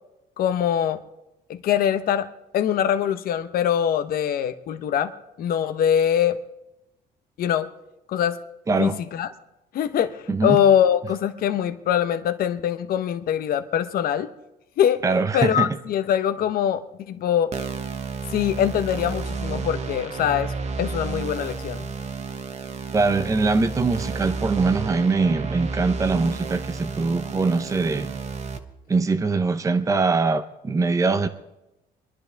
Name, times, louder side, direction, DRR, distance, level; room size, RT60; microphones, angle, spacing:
voice 1, 0.4-1.0 1.5-2.3 2.5-5.1 5.4-6.4 7.4-7.7 8.1-8.4 8.8-9.3 9.7-14.3 14.8-15.0 15.3-17.5 18.3-21.9, left 9 dB, 60° left, 0.9 m, -23 dB
voice 2, 8.7-9.0 10.3-10.6 15.0-15.7 22.9-28.1 28.9-31.3, right 4 dB, 20° right, 0.8 m, -22 dB
sound 1, 17.5-28.6, right 4 dB, 40° right, 1.3 m, -31 dB
25.0 x 11.0 x 3.4 m
cardioid pair, 110°, 17 cm